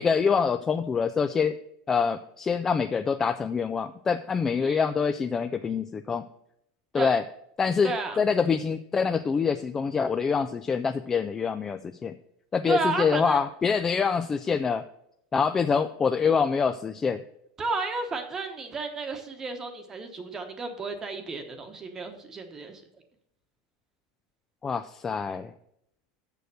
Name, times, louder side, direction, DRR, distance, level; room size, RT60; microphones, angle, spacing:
voice 1, 0.0-1.6 1.9-6.3 6.9-7.2 7.6-12.2 12.5-14.8 15.3-17.2 24.6-25.5, left 6 dB, 20° left, 9 dB, 0.3 m, -25 dB
voice 2, 7.8-8.2 12.7-13.4 17.6-22.8, right 3 dB, 20° right, 6 dB, 1.0 m, -32 dB
6.8 x 6.4 x 6.7 m, 0.76 s
supercardioid pair, 130°, 2 cm